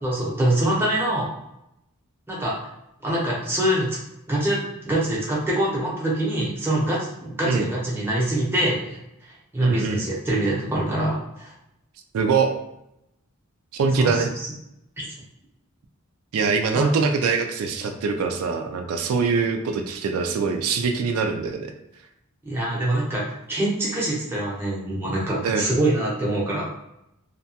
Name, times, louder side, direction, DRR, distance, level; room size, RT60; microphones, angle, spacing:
voice 1, 0.0-1.3 2.3-2.6 3.0-3.9 4.3-4.6 4.8-9.0 9.5-11.5 14.0-14.2 15.0-15.1 16.7-16.9 22.4-26.7, right 1 dB, 10° right, -6 dB, 0.7 m, -24 dB
voice 2, 9.6-10.0 12.1-12.5 13.7-14.3 16.3-21.7 25.4-25.7, right 5 dB, 90° right, 5 dB, 0.3 m, -23 dB
2.8 x 2.2 x 2.7 m, 0.83 s
head